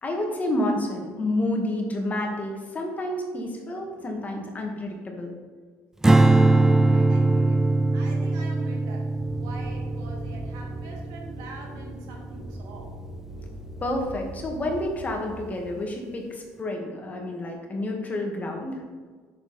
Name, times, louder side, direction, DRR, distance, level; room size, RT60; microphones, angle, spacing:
voice 1, 0.0-5.3 13.8-18.8, left 1 dB, 25° left, 1 dB, 1.8 m, -29 dB
Strum, 6.0-12.4, right 2 dB, 10° right, 0.3 m, -22 dB
voice 2, 6.1-7.6 7.9-9.1 9.4-12.9, right 2 dB, 80° right, 0 dB, 2.2 m, -44 dB
sound 1, 9.2-15.6, right 1 dB, 25° right, 1.9 m, -41 dB
10.0 x 6.5 x 4.3 m, 1.5 s
cardioid pair, 120°, 6 cm